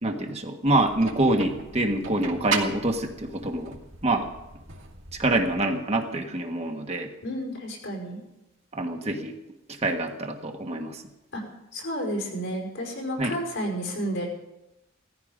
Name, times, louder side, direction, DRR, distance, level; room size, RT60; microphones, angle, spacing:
voice 1, 0.0-3.8 4.0-4.3 5.2-7.1 8.7-9.3 9.7-11.0 13.2-13.4, right 2 dB, 35° right, 4 dB, 1.6 m, -26 dB
sound 1, 0.6-5.7, right 4 dB, 75° right, 2.6 m, -36 dB
voice 2, 7.2-8.2 11.3-11.4 11.7-14.3, equal, 65° left, 1 dB, 5.4 m, -31 dB
18.0 x 14.5 x 5.2 m, 0.94 s
head